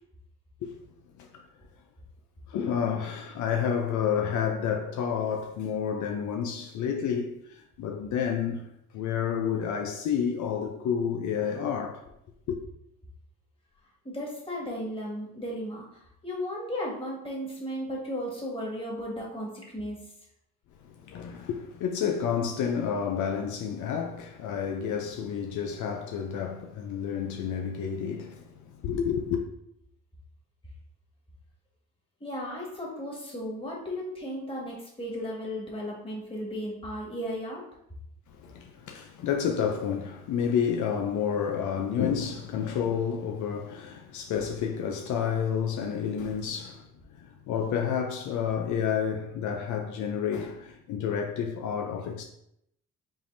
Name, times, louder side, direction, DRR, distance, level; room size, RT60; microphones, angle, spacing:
voice 1, 1.2-1.5 2.5-8.7 8.9-12.1 12.5-12.6 20.8-29.4 38.3-52.2, left 7 dB, 75° left, 0.5 m, -30 dB
voice 2, 14.0-20.1 32.2-37.6, equal, 20° left, 1.7 m, -35 dB
5.4 x 3.5 x 2.6 m
cardioid pair, 90°, 30 cm